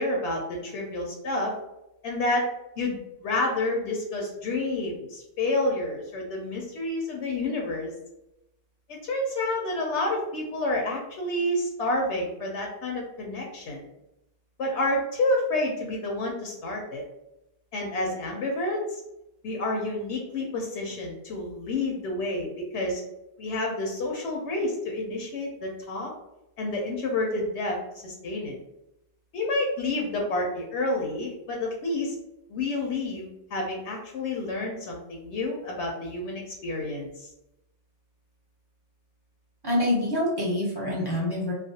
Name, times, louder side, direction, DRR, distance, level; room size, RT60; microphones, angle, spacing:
voice 1, 0.0-1.5 2.0-2.4 2.8-7.9 8.9-13.9 14.6-17.0 17.7-19.0 19.4-23.0 23.4-26.1 26.6-28.6 29.3-32.2 32.5-37.3, left 2 dB, 80° left, 0 dB, 0.9 m, -29 dB
voice 2, 39.6-41.5, left 1 dB, 25° right, -5 dB, 0.8 m, -26 dB
2.4 x 2.0 x 2.7 m, 0.88 s
omnidirectional pair, 1.2 m